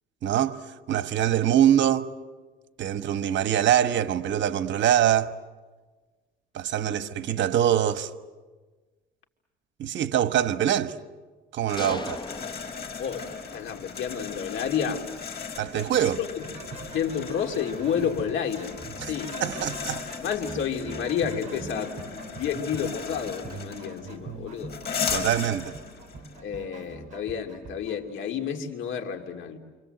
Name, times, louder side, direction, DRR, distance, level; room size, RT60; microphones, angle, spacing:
voice 1, 0.2-0.6 0.9-2.1 2.8-5.3 6.5-8.1 9.8-11.0 11.5-12.2 15.6-16.2 19.0-19.1 19.4-20.0 25.1-25.7, right 10 dB, 65° right, 1.3 m, -24 dB
sound 1, 11.7-26.4, left 6 dB, 50° left, 4.9 m, -37 dB
sound 2, 11.8-13.6, left 2 dB, 20° left, 1.1 m, -38 dB
voice 2, 13.0-15.1 16.2-16.4 16.9-19.3 20.2-24.8 26.4-29.6, left 7 dB, 70° left, 3.0 m, -30 dB
sound 3, 16.4-28.0, right 4 dB, 35° right, 5.0 m, -43 dB
29.0 x 26.0 x 7.9 m
cardioid pair, 105°, 21 cm